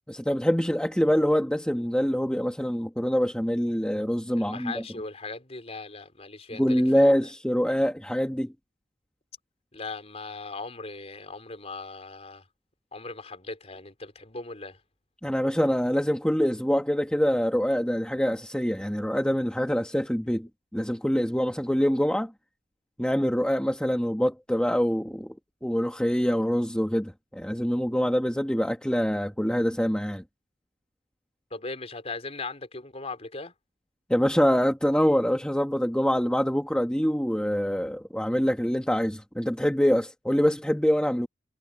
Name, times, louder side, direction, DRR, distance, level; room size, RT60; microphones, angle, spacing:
voice 1, 0.1-4.8 6.5-8.5 15.2-22.3 23.0-25.3 25.6-30.2 34.1-41.3, equal, 5° left, 1.5 m, -25 dB
voice 2, 4.4-7.3 9.7-12.4 12.9-14.8 31.5-33.5, left 3 dB, 35° left, 4.4 m, -38 dB
head